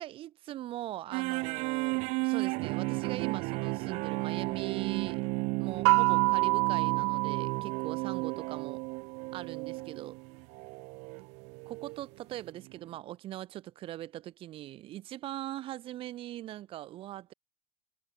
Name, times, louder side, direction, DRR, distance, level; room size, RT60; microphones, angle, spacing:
voice 1, 0.0-5.2 5.6-8.8 9.3-10.2 11.7-17.3, right 14 dB, 35° right, 4.9 m, -41 dB
sound 1, 1.1-12.0 12.6-12.8, right 27 dB, 55° right, 3.4 m, -34 dB
sound 2, 5.9-8.6, right 26 dB, 70° right, 3.5 m, -27 dB
supercardioid pair, 160°, 15 cm